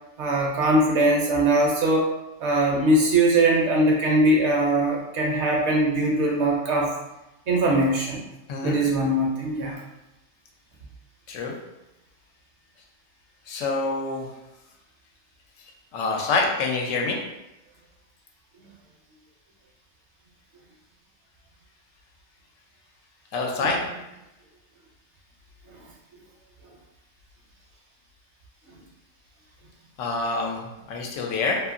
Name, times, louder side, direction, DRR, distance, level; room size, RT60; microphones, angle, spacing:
voice 1, 0.2-2.1 2.4-6.9 7.5-8.2 8.6-9.8 23.6-23.7, right 1 dB, 70° right, -1 dB, 0.9 m, -21 dB
voice 2, 13.5-14.3 15.9-17.2 23.3-23.8 30.0-31.6, left 3 dB, 90° left, 0 dB, 1.0 m, -26 dB
2.7 x 2.5 x 2.5 m, 0.95 s
omnidirectional pair, 1.3 m